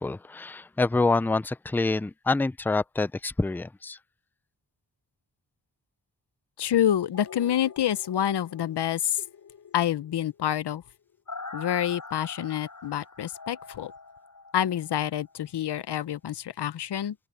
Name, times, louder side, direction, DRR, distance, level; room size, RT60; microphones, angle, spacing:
voice 1, 0.0-4.0, left 3 dB, 5° left, 0.3 m, -26 dB
voice 2, 6.6-9.2 9.7-10.8 11.5-13.9 14.5-17.1, left 10 dB, 80° left, 0.7 m, -27 dB
sound 1, 7.1-15.0 15.4-15.5, left 4 dB, 50° left, 4.6 m, -45 dB
open air
wide cardioid pair, 105°, 40 cm